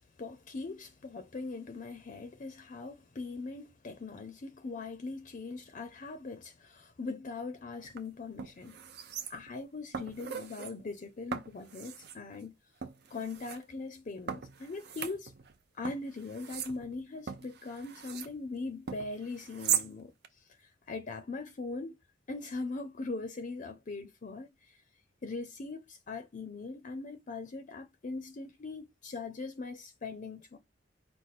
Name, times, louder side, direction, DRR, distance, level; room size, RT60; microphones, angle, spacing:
voice 1, 0.2-8.8 9.3-12.5 13.1-15.3 15.7-22.0 22.3-24.8 25.2-30.6, left 3 dB, 45° left, 0.5 m, -41 dB
sound 1, 7.8-8.0 8.4-9.6 9.9-10.7 11.3-12.2 12.8-13.6 14.3-15.6 15.8-18.3 18.9-19.9 20.2-20.3, right 8 dB, 60° right, 0.6 m, -38 dB
5.0 x 2.3 x 4.1 m
head